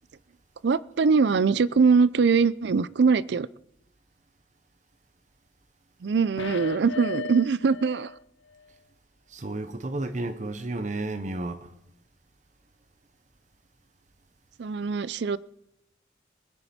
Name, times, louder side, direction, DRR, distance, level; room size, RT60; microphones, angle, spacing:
voice 1, 0.6-3.5 6.0-8.1 14.6-15.4, right 5 dB, 65° right, 0.4 m, -22 dB
sound 1, 6.4-8.2 8.5-8.6, left 5 dB, 90° left, 0.5 m, -37 dB
voice 2, 9.3-11.7, right 2 dB, 40° right, 0.8 m, -32 dB
21.5 x 9.9 x 4.3 m
head